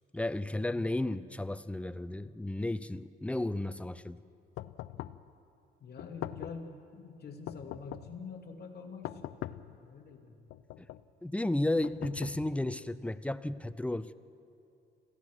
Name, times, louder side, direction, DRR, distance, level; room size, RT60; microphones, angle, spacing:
voice 1, 0.1-4.2 10.8-10.9 11.2-14.1, left 1 dB, 5° left, 14 dB, 0.6 m, -33 dB
sound 1, 4.6-5.3 6.0-6.7 7.5-8.2 9.0-9.8 10.5-11.1 11.8-12.7, left 13 dB, 90° left, 0.6 m, -42 dB
voice 2, 5.8-9.3 9.7-10.4, left 4 dB, 55° left, 2 dB, 2.7 m, -46 dB
27.5 x 15.0 x 6.2 m, 2.5 s
cardioid pair, 90°, 20 cm